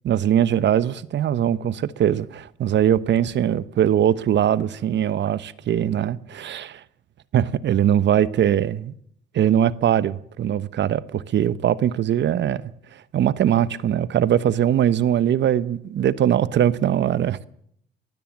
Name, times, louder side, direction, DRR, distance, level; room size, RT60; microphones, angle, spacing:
voice 1, 0.0-6.8 7.3-8.9 9.3-12.6 13.1-17.4, right 10 dB, 65° right, 1.1 m, -21 dB
23.0 x 15.5 x 7.4 m
cardioid pair, 90°, 20 cm